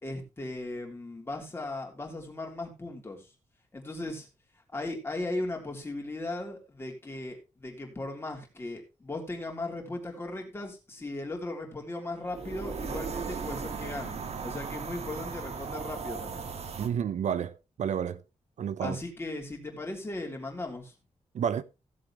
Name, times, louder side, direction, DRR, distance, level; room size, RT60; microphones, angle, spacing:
voice 1, 0.0-3.3 3.7-4.3 4.7-16.5 18.8-20.9, left 2 dB, 20° left, 3.4 m, -37 dB
sound 1, 12.3-16.9, right 5 dB, 60° right, 1.6 m, -37 dB
voice 2, 16.8-18.2 18.6-19.0 21.3-21.6, right 8 dB, 75° right, 0.7 m, -30 dB
16.5 x 7.6 x 3.0 m
wide cardioid pair, 145°, 12 cm